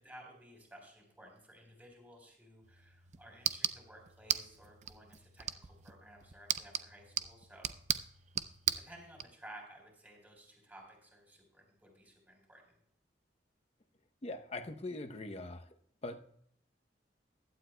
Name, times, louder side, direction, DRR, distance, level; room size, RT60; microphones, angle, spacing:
voice 1, 0.0-7.7 8.8-12.8, right 1 dB, 10° right, 1 dB, 3.6 m, -56 dB
sound 1, 2.6-9.3, right 9 dB, 40° right, 0.5 m, -38 dB
voice 2, 14.2-15.8 16.0-16.4, left 2 dB, 35° left, 7 dB, 0.7 m, -42 dB
15.5 x 11.5 x 2.2 m, 0.68 s
head